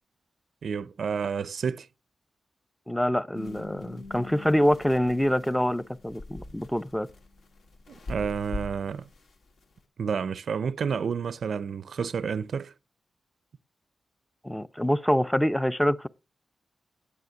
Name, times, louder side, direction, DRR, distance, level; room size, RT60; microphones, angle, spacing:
voice 1, 0.6-1.9 7.9-9.1 10.0-12.7, right 6 dB, 65° right, 0.5 m, -30 dB
voice 2, 2.9-7.1 14.4-16.1, equal, 5° left, 0.5 m, -25 dB
sound 1, 3.3-9.2 9.6-9.7, left 2 dB, 80° left, 2.1 m, -42 dB
9.5 x 8.5 x 6.2 m
wide cardioid pair, 135°, 0 cm